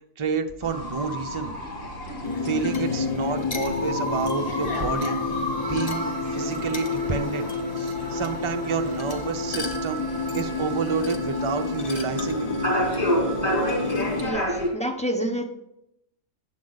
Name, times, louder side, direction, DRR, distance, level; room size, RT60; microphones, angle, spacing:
voice 1, 0.2-1.5 2.4-5.2 5.7-7.5 7.8-10.0 10.3-12.5, right 5 dB, 35° right, 6 dB, 0.5 m, -29 dB
sound 1, 0.6-14.7, equal, 75° left, 2.9 m, -31 dB
sound 2, 2.2-14.3, left 4 dB, 30° left, 0.9 m, -30 dB
voice 2, 14.2-15.5, right 1 dB, 5° left, 2 dB, 0.6 m, -28 dB
8.5 x 7.5 x 3.9 m, 0.82 s
omnidirectional pair, 1.4 m